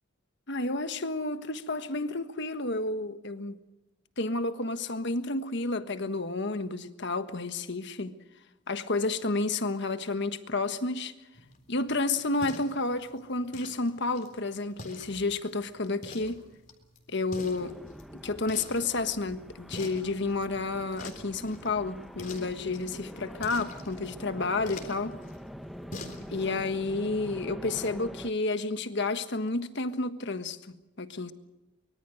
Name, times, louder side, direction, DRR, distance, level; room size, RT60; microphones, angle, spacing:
voice 1, 0.5-3.6 4.2-8.1 8.7-11.1 11.7-16.4 17.1-17.8 18.1-25.2 26.3-31.3, left 3 dB, 60° left, 1.5 m, -31 dB
sound 1, 11.3-26.6, left 2 dB, 40° left, 3.7 m, -47 dB
sound 2, 17.3-28.3, equal, ahead, 0.9 m, -44 dB
24.5 x 23.5 x 6.5 m
head